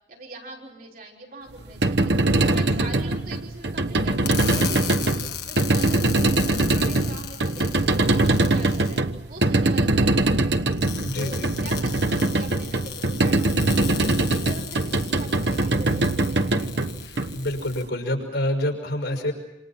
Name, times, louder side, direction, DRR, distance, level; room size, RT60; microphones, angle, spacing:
voice 1, 0.1-2.1 2.4-5.2 5.5-9.0 9.3-10.6 11.1-13.6 13.9-16.8, right 2 dB, 55° right, -2 dB, 5.7 m, -42 dB
sound 1, 1.6-17.8, right 2 dB, 70° right, 1.1 m, -22 dB
sound 2, 4.2-9.0 10.7-17.8, left 9 dB, 65° left, 1.9 m, -36 dB
voice 2, 11.0-11.5 17.3-19.3, left 1 dB, 85° left, 2 dB, 5.9 m, -27 dB
28.0 x 27.5 x 6.0 m, 0.93 s
head